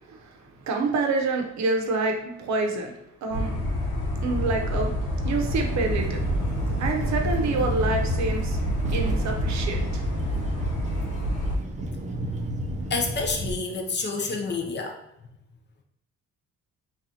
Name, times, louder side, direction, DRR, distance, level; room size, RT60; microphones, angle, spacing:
voice 1, 0.7-2.9 3.2-3.5 4.2-4.9 5.2-6.2 6.8-8.6 8.9-9.9, right 3 dB, 65° right, 2 dB, 0.7 m, -27 dB
sound 1, 3.3-11.6, equal, 90° left, 0.8 m, -27 dB
sound 2, 5.3-13.5, right 1 dB, 25° right, 0.5 m, -33 dB
voice 2, 12.9-15.0, left 4 dB, 35° left, 3 dB, 0.5 m, -28 dB
4.0 x 2.4 x 2.7 m, 0.82 s
cardioid pair, 90°, 30 cm